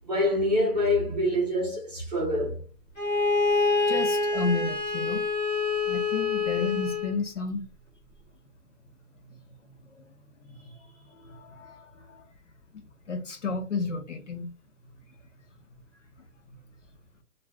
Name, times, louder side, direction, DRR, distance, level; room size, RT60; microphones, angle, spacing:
voice 1, 0.1-2.6, left 1 dB, 25° right, 0.9 m, -25 dB
Bowed string instrument, 3.0-7.2, left 3 dB, 25° left, 1.3 m, -26 dB
voice 2, 3.9-5.2 5.9-7.6 10.5-10.7 11.1-12.2 13.1-14.5, left 4 dB, 50° left, 0.6 m, -32 dB
2.4 x 2.4 x 3.2 m
hypercardioid pair, 180°, 46 cm